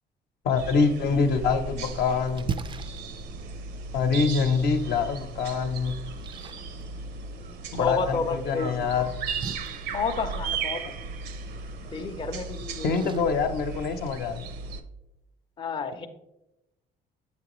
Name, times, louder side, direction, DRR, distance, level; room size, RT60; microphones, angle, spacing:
voice 1, 0.4-2.5 3.9-6.0 7.7-9.1 12.8-14.5, left 5 dB, 65° left, 7 dB, 0.7 m, -25 dB
sound 1, 0.6-14.8, right 4 dB, 80° right, 0.7 m, -36 dB
Splash splatter, 1.4-14.4, right 6 dB, 30° right, 0.3 m, -43 dB
voice 2, 7.8-8.9 9.9-10.9 11.9-13.1 15.6-16.1, left 4 dB, 30° left, 5 dB, 0.5 m, -31 dB
7.7 x 5.7 x 3.0 m, 0.94 s
cardioid pair, 110°, 17 cm